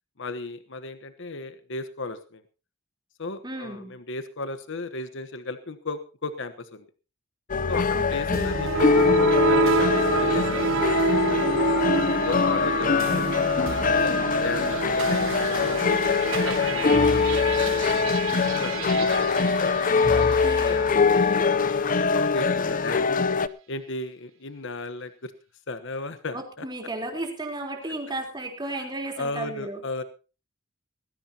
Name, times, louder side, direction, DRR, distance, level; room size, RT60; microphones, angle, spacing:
voice 1, 0.2-2.4 3.2-6.9 7.7-10.9 11.2-11.4 12.2-15.8 16.4-19.1 20.4-23.1 23.7-25.3 25.7-26.7 29.2-30.0, left 3 dB, 65° left, 10 dB, 1.2 m, -35 dB
voice 2, 3.4-3.9 7.9-8.6 20.1-20.9 26.3-29.8, right 2 dB, 20° right, 2 dB, 3.8 m, -34 dB
sound 1, 7.5-23.5, left 4 dB, 40° left, 0.7 m, -23 dB
sound 2, 8.3-20.6, right 4 dB, 70° right, 1.1 m, -28 dB
19.5 x 16.0 x 2.9 m, 0.34 s
head